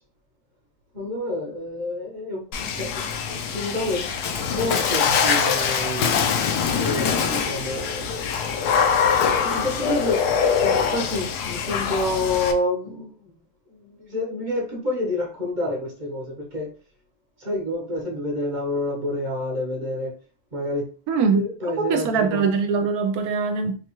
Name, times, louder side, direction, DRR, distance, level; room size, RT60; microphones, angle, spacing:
voice 1, 0.9-4.1 4.5-6.2 6.8-8.2 9.4-10.3 10.6-13.3 13.7-16.7 17.4-20.1 20.5-20.9 21.3-22.5, left 1 dB, 35° right, -1 dB, 0.8 m, -28 dB
Water / Splash splatter, 2.5-12.5, left 6 dB, 75° left, 1.1 m, -23 dB
voice 2, 21.1-21.4 21.8-23.8, right 5 dB, 75° right, 6 dB, 1.0 m, -22 dB
4.1 x 2.3 x 2.9 m, 0.38 s
omnidirectional pair, 1.7 m